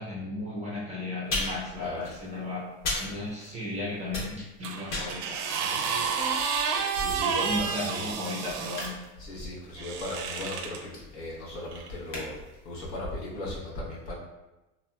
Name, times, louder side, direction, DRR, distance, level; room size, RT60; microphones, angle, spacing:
voice 1, 0.0-2.7 3.0-5.4 7.4-8.9, left 2 dB, 15° right, -5 dB, 0.3 m, -35 dB
sound 1, 1.2-3.7 4.0-12.9, left 2 dB, 40° left, 1.0 m, -38 dB
sound 2, 4.6-8.9 9.8-10.8 11.7-11.9, right 6 dB, 75° right, 0.5 m, -30 dB
voice 2, 6.9-8.1 9.2-12.4 12.6-14.1, left 2 dB, 90° left, -5 dB, 1.1 m, -37 dB
2.9 x 2.6 x 2.2 m, 1.0 s
supercardioid pair, 115°, 48 cm